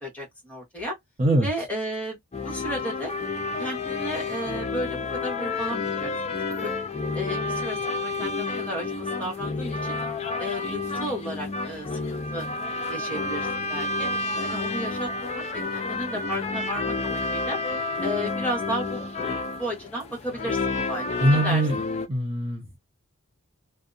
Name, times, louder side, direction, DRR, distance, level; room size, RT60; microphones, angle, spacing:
voice 1, 0.0-0.9 1.4-3.1 3.6-6.7 7.1-10.0 10.4-12.5 12.9-14.1 14.4-17.6 18.0-19.0 19.6-21.6, equal, 5° left, 1.2 m, -33 dB
sound 1, 2.3-22.1, left 3 dB, 30° left, 0.4 m, -30 dB
voice 2, 21.2-21.8 22.1-22.8, right 1 dB, 25° right, 0.7 m, -22 dB
2.7 x 2.1 x 2.3 m
head